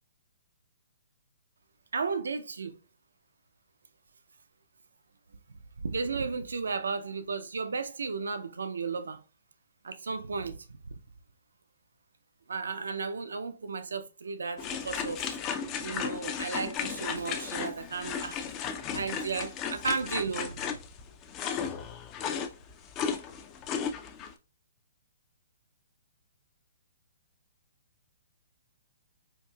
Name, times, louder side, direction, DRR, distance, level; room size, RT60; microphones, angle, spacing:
voice 1, 1.9-2.8 5.8-9.2 9.8-11.0 12.5-15.3 15.8-18.4 18.9-20.6, right 4 dB, 80° right, 0.4 m, -34 dB
sound 1, 14.6-24.3, left 7 dB, 25° left, 0.4 m, -35 dB
4.6 x 2.5 x 2.3 m
hypercardioid pair, 135°, 0 cm